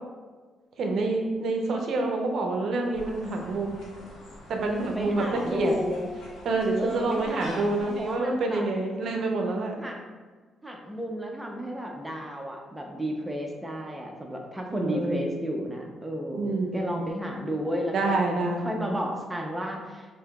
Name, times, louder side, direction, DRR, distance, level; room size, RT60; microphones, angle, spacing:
voice 1, 0.8-3.7 4.5-5.7 6.4-9.8 14.7-15.2 16.3-16.9 17.9-18.7, right 2 dB, 65° right, 2 dB, 0.6 m, -27 dB
sound 1, 2.9-8.1, left 1 dB, 85° left, 1.2 m, -45 dB
voice 2, 4.9-6.1 6.8-8.7 9.8-10.0 10.6-20.1, equal, 10° right, 1 dB, 0.6 m, -32 dB
5.5 x 2.7 x 2.3 m, 1.4 s
cardioid pair, 90°, 0 cm